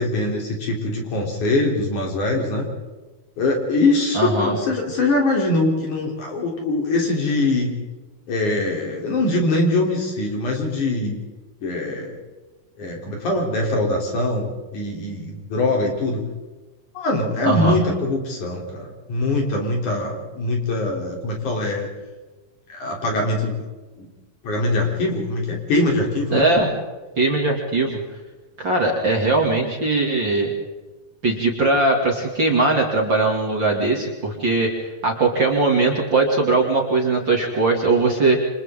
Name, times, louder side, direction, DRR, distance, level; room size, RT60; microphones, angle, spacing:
voice 1, 0.0-2.6 3.4-7.7 8.3-11.2 11.6-12.2 12.8-16.2 16.9-21.9 22.7-23.6 24.0-24.1 24.4-26.4, left 2 dB, 55° left, 0 dB, 4.9 m, -22 dB
voice 2, 4.1-4.5 17.4-17.8 26.3-26.7 27.2-28.0 28.6-30.5 31.2-38.4, right 3 dB, 35° right, -1 dB, 2.9 m, -20 dB
29.0 x 26.0 x 3.8 m, 1.2 s
omnidirectional pair, 4.3 m